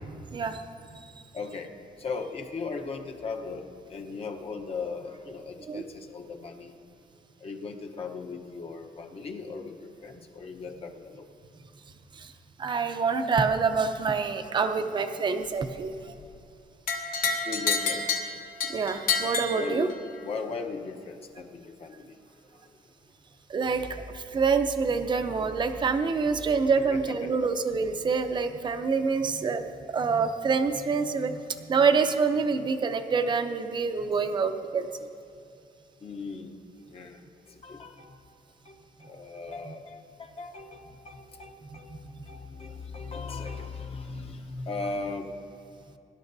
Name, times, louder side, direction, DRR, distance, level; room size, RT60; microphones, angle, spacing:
voice 1, 1.3-1.7 2.0-6.7 7.4-9.7 10.0-11.2 14.8-15.2 17.4-18.2 19.5-19.9 20.2-22.2 26.4-26.5 26.9-27.3 36.0-36.5 36.9-37.2 37.6-38.2 38.7-45.3, left 4 dB, 35° left, 3 dB, 0.9 m, -38 dB
voice 2, 12.6-15.9 18.7-19.9 23.5-23.9 24.1-29.6 29.9-34.9, right 5 dB, 30° right, 8 dB, 0.6 m, -26 dB
sound 1, 16.9-20.2, left 4 dB, 60° left, 1.5 m, -29 dB
23.5 x 11.5 x 2.7 m, 2.5 s
cardioid pair, 170°, 17 cm